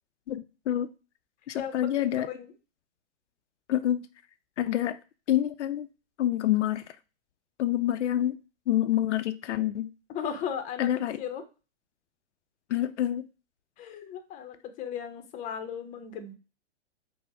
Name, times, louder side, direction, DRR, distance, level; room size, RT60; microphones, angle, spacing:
voice 1, 0.3-0.9 1.5-2.3 3.7-4.1 4.6-5.0 5.3-5.9 6.2-6.8 7.6-8.4 8.7-9.9 10.8-11.2 12.7-13.3, left 12 dB, 75° left, 0.5 m, -27 dB
voice 2, 1.5-2.5 10.1-10.9 11.2-11.4 13.8-16.3, left 8 dB, 20° left, 0.6 m, -36 dB
5.1 x 2.1 x 4.6 m
hypercardioid pair, 125°, 35 cm